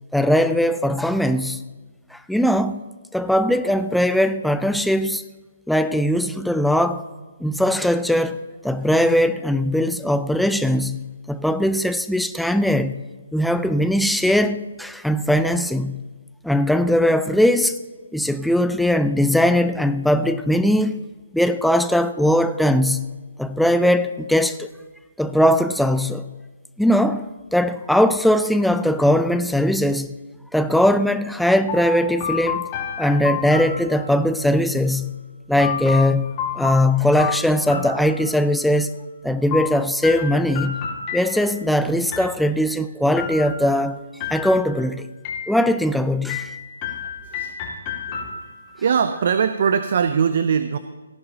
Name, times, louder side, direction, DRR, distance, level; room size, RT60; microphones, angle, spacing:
voice 1, 0.1-1.6 2.1-2.8 3.1-5.2 5.7-7.0 7.4-8.4 8.6-13.0 13.3-16.0 16.4-17.8 18.1-21.0 21.3-23.1 23.4-24.7 25.2-26.3 26.8-30.1 30.5-32.6 33.0-35.2 35.5-38.9 39.2-40.8 41.1-44.0 44.3-45.1 45.5-46.5, left 1 dB, ahead, 0.4 m, -20 dB
sound 1, 31.7-34.4 35.6-38.6 39.5-41.7 42.1-42.7 43.2-43.8 44.2-44.8 45.2-45.9 46.3-48.8, left 6 dB, 30° left, 2.3 m, -30 dB
voice 2, 47.0-47.5 48.8-50.8, right 7 dB, 55° right, 0.5 m, -21 dB
18.0 x 10.5 x 2.9 m
hypercardioid pair, 150°, 0 cm